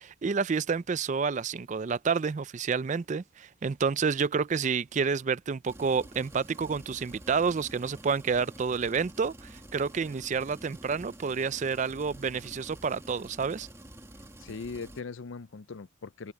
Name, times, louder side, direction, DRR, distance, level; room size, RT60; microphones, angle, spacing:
voice 1, 0.0-13.7, right 5 dB, 35° right, 0.4 m, -29 dB
sound 1, 5.7-15.0, right 1 dB, 15° right, 2.2 m, -49 dB
voice 2, 14.4-16.3, left 4 dB, 65° left, 0.5 m, -40 dB
head